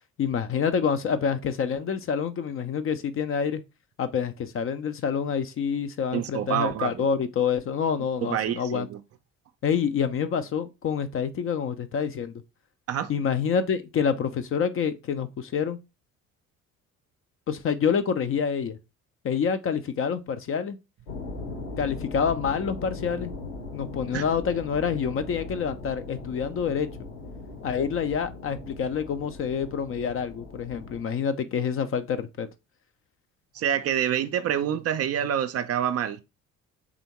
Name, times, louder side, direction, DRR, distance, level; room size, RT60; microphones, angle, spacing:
voice 1, 0.2-3.6 4.0-8.9 9.6-12.4 13.1-15.8 17.5-18.8 19.2-20.8 21.8-23.3 23.7-26.9 27.6-32.5, left 7 dB, 35° left, 0.4 m, -27 dB
voice 2, 6.1-7.0 8.2-9.0 12.9-13.1 24.1-24.2 33.5-36.2, right 10 dB, 40° right, 0.4 m, -27 dB
sound 1, 21.1-31.0, left 3 dB, 70° left, 1.3 m, -39 dB
3.7 x 3.4 x 2.9 m
hypercardioid pair, 50°, 40 cm